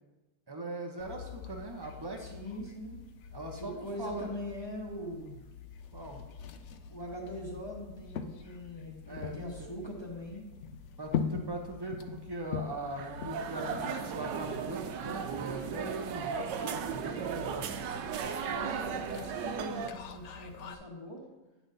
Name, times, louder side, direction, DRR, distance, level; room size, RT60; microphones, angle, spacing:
voice 1, 0.5-2.3 3.3-4.3 5.9-6.2 9.1-9.7 11.0-18.1, right 2 dB, 30° right, 1 dB, 0.4 m, -40 dB
sound 1, 1.0-20.7, left 7 dB, 80° left, 0.6 m, -43 dB
voice 2, 2.2-3.0 3.6-5.4 6.9-10.4 18.4-21.2, equal, 15° left, -2 dB, 1.1 m, -42 dB
sound 2, 12.9-19.9, right 7 dB, 80° right, 1.3 m, -36 dB
9.6 x 6.1 x 4.0 m, 1.1 s
omnidirectional pair, 1.9 m